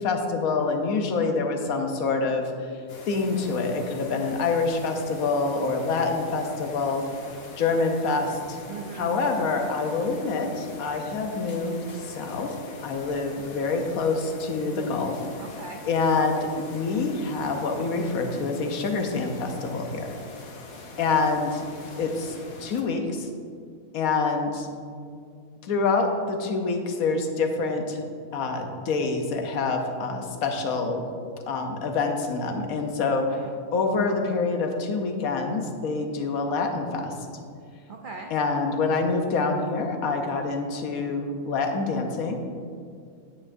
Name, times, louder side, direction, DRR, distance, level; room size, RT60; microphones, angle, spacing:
voice 1, 0.0-2.5 3.1-7.0 7.6-8.6 8.9-11.8 12.0-12.5 12.8-15.2 15.9-20.1 21.0-23.3 23.9-24.7 25.6-28.0 28.3-31.0 31.5-33.4 33.7-37.1 38.3-42.4, left 4 dB, 75° left, 4 dB, 1.2 m, -26 dB
sound 1, 2.9-22.8, left 3 dB, 50° left, 1.0 m, -43 dB
voice 2, 8.7-9.2 15.4-15.8 33.3-33.5 37.9-38.3, right 4 dB, 85° right, 2 dB, 0.4 m, -39 dB
9.5 x 8.6 x 2.6 m, 2.3 s
omnidirectional pair, 1.5 m